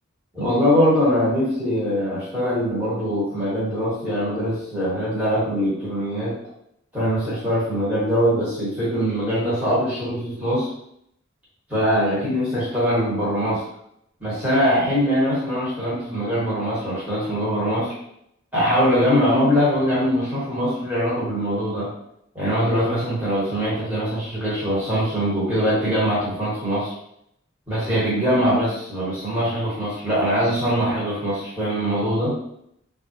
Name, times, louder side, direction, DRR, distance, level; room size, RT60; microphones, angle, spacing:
voice 1, 0.3-6.3 6.9-10.7 11.7-13.6 14.2-17.9 18.5-21.9 22.3-26.9 27.7-32.3, equal, 5° right, -10 dB, 1.1 m, -22 dB
3.6 x 2.4 x 2.8 m, 0.74 s
head